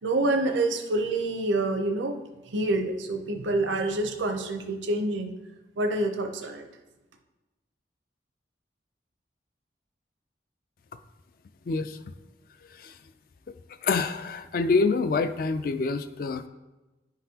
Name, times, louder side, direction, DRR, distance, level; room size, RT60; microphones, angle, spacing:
voice 1, 0.0-2.2 2.5-5.3 5.8-6.7, right 2 dB, 85° right, 4 dB, 0.6 m, -27 dB
voice 2, 11.7-12.0 12.7-13.0 13.8-16.5, left 4 dB, 50° left, 9 dB, 0.3 m, -26 dB
11.0 x 3.9 x 2.8 m, 1.1 s
head